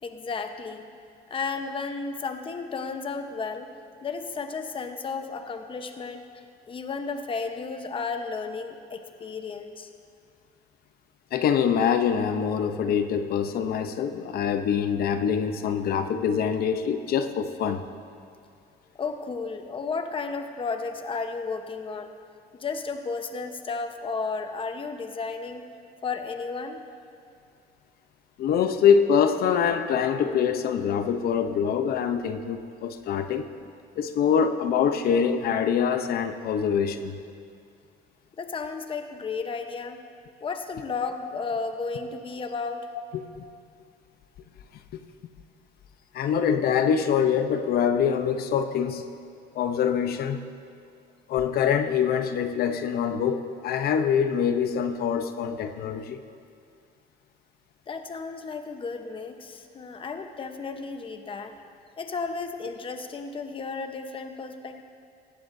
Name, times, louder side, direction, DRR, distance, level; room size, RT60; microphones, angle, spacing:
voice 1, 0.0-0.9 1.3-3.7 4.0-6.2 6.7-9.9 18.9-22.1 22.6-25.6 26.0-26.8 38.4-40.0 40.4-42.9 57.9-61.5 62.0-64.8, left 4 dB, 30° left, 6 dB, 1.0 m, -33 dB
voice 2, 11.3-17.8 28.4-33.4 34.0-37.1 43.1-43.4 44.9-45.0 46.1-49.0 49.5-50.4 51.3-56.2, left 7 dB, 65° left, 9 dB, 0.8 m, -24 dB
18.5 x 14.5 x 2.7 m, 2.4 s
cardioid pair, 110°, 17 cm